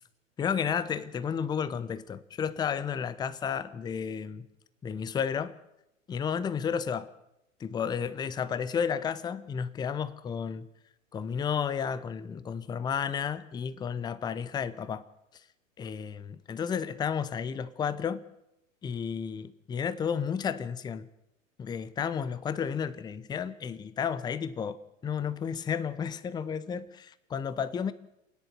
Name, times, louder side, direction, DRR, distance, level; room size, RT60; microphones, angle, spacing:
voice 1, 0.4-4.5 4.8-5.6 6.1-7.1 7.6-10.7 11.1-15.0 15.3-15.4 15.8-18.2 18.8-21.1 21.6-27.9, left 7 dB, 10° left, 0.7 m, -32 dB
26.5 x 10.5 x 9.5 m
figure-of-eight pair, 100°, 39 cm